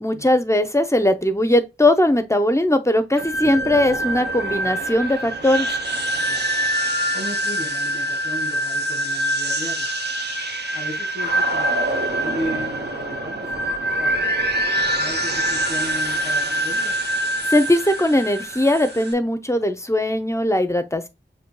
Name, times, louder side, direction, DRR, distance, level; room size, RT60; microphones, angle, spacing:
voice 1, 0.0-5.7 17.5-21.1, left 1 dB, 15° left, 0.5 m, -19 dB
sound 1, 3.2-19.1, right 1 dB, 65° right, 0.8 m, -24 dB
voice 2, 7.1-9.9 10.7-14.2 14.9-16.9, equal, 30° right, 2.1 m, -35 dB
6.7 x 2.7 x 2.2 m
wide cardioid pair, 70°, 19 cm